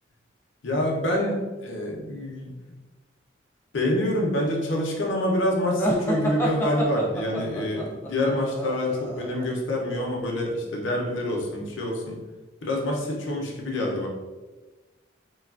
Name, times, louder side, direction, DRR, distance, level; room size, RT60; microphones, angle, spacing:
voice 1, 0.6-2.5 3.7-12.2 12.6-14.1, left 1 dB, 80° left, -1 dB, 0.6 m, -26 dB
sound 1, 5.8-9.5, right 1 dB, 10° left, 0.3 m, -29 dB
3.1 x 2.3 x 2.3 m, 1.2 s
head